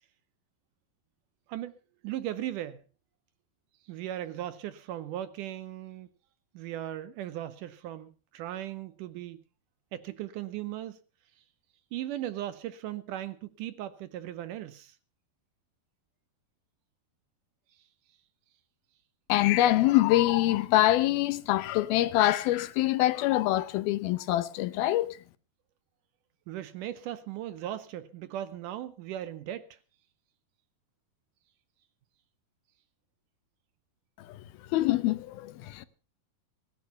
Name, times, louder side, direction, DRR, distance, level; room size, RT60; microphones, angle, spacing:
voice 1, 2.0-2.8 3.9-6.1 6.5-9.4 9.9-11.0 11.9-15.0 26.5-29.8, right 12 dB, 70° right, 2.2 m, -37 dB
voice 2, 19.3-25.2 34.2-34.4 34.7-35.9, left 15 dB, 85° left, 2.8 m, -25 dB
17.5 x 11.0 x 5.6 m
omnidirectional pair, 4.2 m